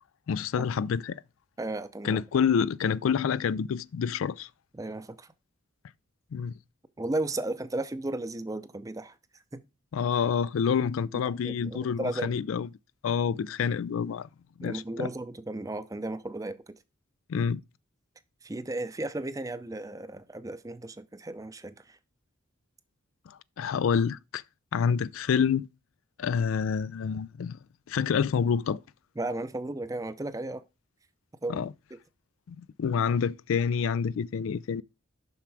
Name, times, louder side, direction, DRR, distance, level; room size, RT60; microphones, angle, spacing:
voice 1, 0.3-1.2 2.0-4.5 6.3-6.5 9.9-12.7 13.0-14.3 14.6-15.1 17.3-17.6 23.3-24.4 24.7-25.7 26.2-27.6 27.9-28.8 31.5-31.7 32.5-34.8, left 6 dB, 80° left, 0.3 m, -28 dB
voice 2, 1.6-2.2 4.7-5.3 7.0-9.1 9.5-9.6 11.4-12.3 14.6-16.8 18.4-22.0 29.2-30.6 31.4-31.6, right 2 dB, 15° right, 0.5 m, -34 dB
7.1 x 5.8 x 4.7 m
head